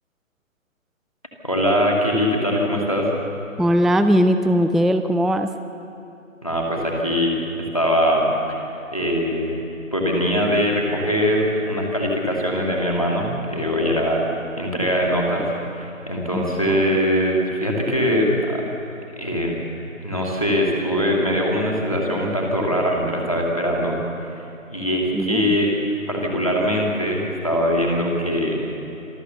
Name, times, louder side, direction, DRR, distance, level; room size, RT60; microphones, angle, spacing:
voice 1, 1.4-3.1 6.4-7.4 7.7-8.6 8.9-9.6 9.9-14.2 14.6-18.6 19.2-19.6 20.0-24.4 24.7-25.7 26.1-28.6, equal, 25° left, -2 dB, 2.3 m, -22 dB
voice 2, 3.6-5.5 16.3-16.8 25.1-25.6, equal, ahead, 9 dB, 0.4 m, -19 dB
26.5 x 14.0 x 6.9 m, 2.9 s
figure-of-eight pair, 180°, 41 cm